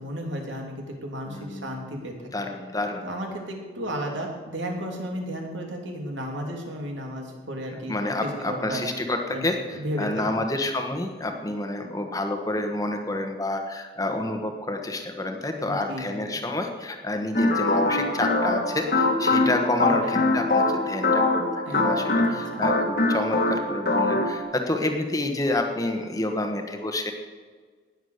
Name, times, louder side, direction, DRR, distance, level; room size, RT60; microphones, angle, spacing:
voice 1, 0.0-2.3 3.0-7.9 8.2-8.8 9.3-10.4 15.6-16.2 20.0-20.2 21.7-21.8 22.2-22.6, equal, 80° right, 1 dB, 3.0 m, -33 dB
voice 2, 1.3-1.8 2.3-3.0 7.9-27.1, left 2 dB, 20° left, 4 dB, 1.2 m, -29 dB
sound 1, 17.3-24.4, left 2 dB, 50° left, 1.6 m, -23 dB
19.0 x 7.3 x 6.7 m, 1.5 s
head